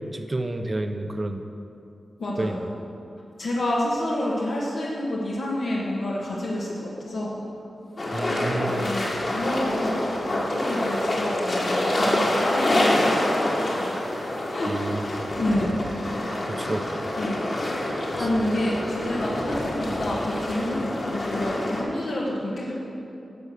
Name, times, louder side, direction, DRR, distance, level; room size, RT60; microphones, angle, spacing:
voice 1, 0.1-1.4 2.4-2.7 8.1-8.9 14.7-15.3 16.5-17.1 18.1-18.3, right 2 dB, 25° right, 6 dB, 0.7 m, -30 dB
voice 2, 2.2-2.7 3.4-7.4 8.5-13.9 14.5-14.7 15.4-15.9 17.2-17.4 18.1-22.7, left 1 dB, 75° left, -5 dB, 1.7 m, -28 dB
sound 1, 8.0-21.8, left 1 dB, 40° left, 1.9 m, -26 dB
12.0 x 7.0 x 6.5 m, 2.8 s
wide cardioid pair, 130°, 0 cm